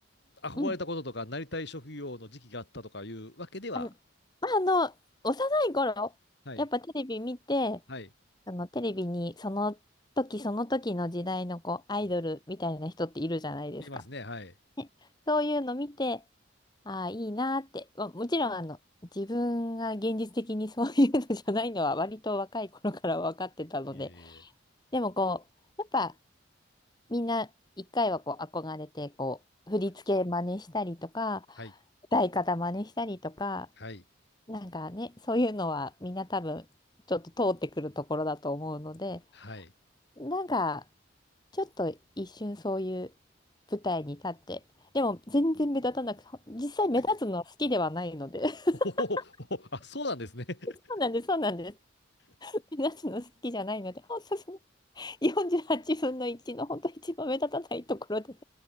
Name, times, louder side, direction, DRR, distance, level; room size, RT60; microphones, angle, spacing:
voice 1, 0.4-3.9 6.5-6.6 7.9-8.1 13.8-14.5 23.9-24.4 31.6-31.7 33.8-34.0 39.3-39.7 49.0-49.2 49.5-50.7, left 2 dB, 55° left, 4.3 m, -37 dB
voice 2, 4.4-4.9 5.2-6.1 6.6-7.8 8.5-9.8 10.2-14.0 14.8-14.9 15.3-16.2 16.9-18.8 19.1-24.5 24.9-25.4 25.8-26.1 27.1-27.5 27.8-29.4 29.7-31.8 32.1-33.7 34.5-36.6 37.1-39.2 39.5-39.6 40.2-40.8 41.5-43.1 43.7-44.6 44.9-48.9 50.9-51.7 52.4-54.6 54.9-58.3, left 2 dB, 20° left, 1.4 m, -31 dB
head